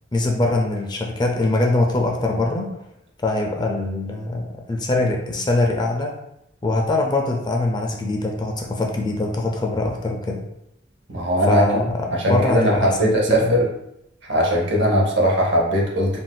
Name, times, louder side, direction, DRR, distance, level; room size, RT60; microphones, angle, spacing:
voice 1, 0.1-2.8 3.2-6.2 6.6-10.4 11.5-13.6, left 2 dB, 20° left, 1 dB, 0.3 m, -23 dB
voice 2, 11.1-11.8 12.1-13.7 14.3-16.2, equal, 65° right, -1 dB, 0.7 m, -19 dB
3.7 x 2.5 x 2.2 m, 0.81 s
head